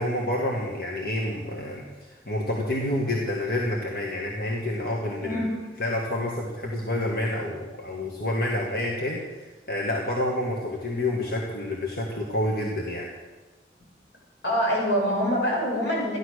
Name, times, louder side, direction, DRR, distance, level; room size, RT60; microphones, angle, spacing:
voice 1, 0.0-5.4 5.8-13.1, left 1 dB, 55° left, -1 dB, 1.8 m, -28 dB
voice 2, 14.4-16.2, equal, 90° left, -3 dB, 6.3 m, -25 dB
14.5 x 11.5 x 6.5 m, 1.2 s
head